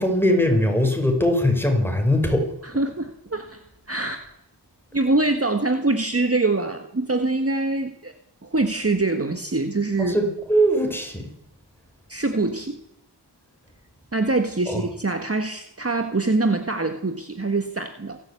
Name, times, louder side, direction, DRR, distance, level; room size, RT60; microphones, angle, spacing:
voice 1, 0.0-2.5 10.0-11.3 14.7-14.8, equal, 5° left, 4 dB, 5.5 m, -21 dB
voice 2, 2.6-3.6 3.9-4.2 4.9-8.1 8.4-10.2 12.1-12.8 14.1-18.2, right 2 dB, 35° right, 6 dB, 1.6 m, -24 dB
27.5 x 12.0 x 8.4 m, 0.81 s
wide cardioid pair, 50°, 42 cm